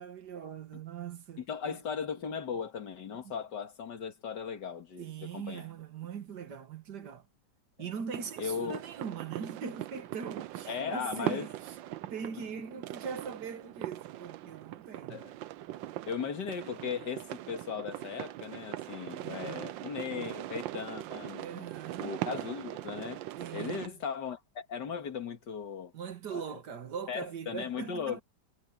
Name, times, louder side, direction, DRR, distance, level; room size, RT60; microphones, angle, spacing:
voice 1, 0.0-1.8 3.2-3.3 5.0-7.3 7.8-11.8 12.1-15.2 19.2-19.7 21.4-22.1 23.4-23.9 25.9-28.2, right 7 dB, 60° right, 1.9 m, -41 dB
voice 2, 1.4-5.7 7.8-7.9 8.4-8.8 10.7-11.5 15.1-15.3 16.1-21.6 22.0-23.2 23.5-25.9 26.3-26.6 27.1-28.2, left 6 dB, 65° left, 2.4 m, -37 dB
sound 1, 8.1-23.9, right 14 dB, 80° right, 1.4 m, -41 dB
omnidirectional pair, 2.1 m